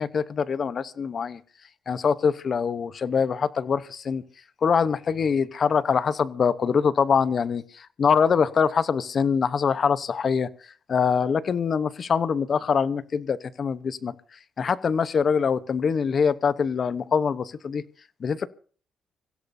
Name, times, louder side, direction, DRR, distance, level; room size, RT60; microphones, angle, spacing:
voice 1, 0.0-1.4 1.9-4.2 4.6-10.5 10.9-17.8 18.2-18.5, left 6 dB, 50° left, 16 dB, 0.9 m, -24 dB
25.5 x 16.0 x 2.7 m, 0.43 s
cardioid pair, 90°, 0 cm